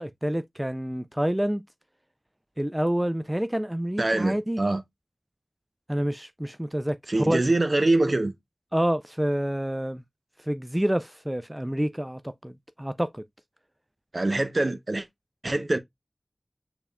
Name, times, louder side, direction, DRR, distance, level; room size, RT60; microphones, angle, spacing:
voice 1, 0.0-1.6 2.6-4.6 5.9-7.4 8.7-10.0 10.4-13.2, right 1 dB, 15° right, 0.4 m, -28 dB
voice 2, 4.0-4.8 7.1-8.3 14.1-15.0 15.4-15.8, right 2 dB, 55° right, 0.7 m, -24 dB
6.7 x 3.5 x 2.2 m
wide cardioid pair, 50°, 0 cm